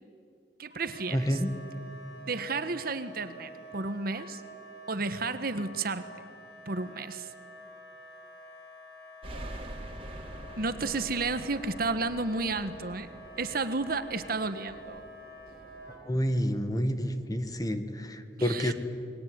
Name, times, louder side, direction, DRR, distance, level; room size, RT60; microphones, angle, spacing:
voice 1, 0.6-1.4 2.3-4.4 4.9-6.3 6.6-7.3 10.6-13.1 13.4-15.0 18.4-18.7, right 3 dB, 55° right, 11 dB, 1.4 m, -32 dB
Wind instrument woodwind instrument, 0.7-16.0, right 1 dB, 65° left, 7.1 m, -49 dB
voice 2, 1.1-1.5 16.0-18.7, equal, 20° left, 9 dB, 1.7 m, -29 dB
sound 1, 9.2-17.8, right 1 dB, 35° right, 3.0 m, -46 dB
29.0 x 21.5 x 9.7 m, 2.5 s
head